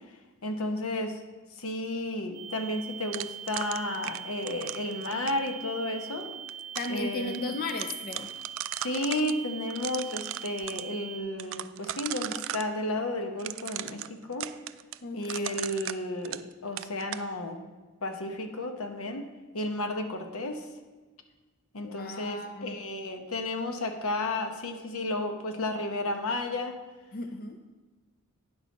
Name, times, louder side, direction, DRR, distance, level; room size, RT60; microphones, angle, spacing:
voice 1, 0.4-1.2 1.6-6.3 6.9-7.4 8.7-14.5 15.1-17.6 18.0-19.3 19.5-20.7 21.7-26.7, left 1 dB, 75° left, 5 dB, 0.9 m, -32 dB
sound 1, 2.3-11.2, right 8 dB, 20° left, 1.5 m, -42 dB
sound 2, 3.1-5.5 6.2-7.0 7.3-7.4 7.7-9.3 9.7-10.8 11.4-12.7 13.4-16.5 16.8-17.3, right 13 dB, 65° right, 0.3 m, -37 dB
voice 2, 6.8-8.3 15.0-15.6 21.8-22.8 27.1-27.6, left 2 dB, 45° left, 5 dB, 0.5 m, -35 dB
9.7 x 6.2 x 4.1 m, 1.3 s
head